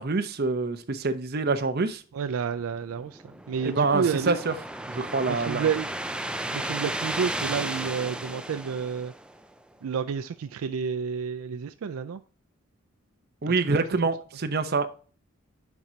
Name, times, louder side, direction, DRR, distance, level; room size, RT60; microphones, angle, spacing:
voice 1, 0.0-2.0 3.6-4.5 4.9-5.7 13.4-14.9, right 3 dB, 45° right, 0.7 m, -26 dB
voice 2, 2.1-4.4 5.3-5.9 6.5-9.1 9.8-12.2 13.7-14.0, right 6 dB, 75° right, 0.4 m, -30 dB
sound 1, 3.0-9.5, right 1 dB, 5° right, 0.4 m, -34 dB
11.0 x 4.4 x 2.7 m
head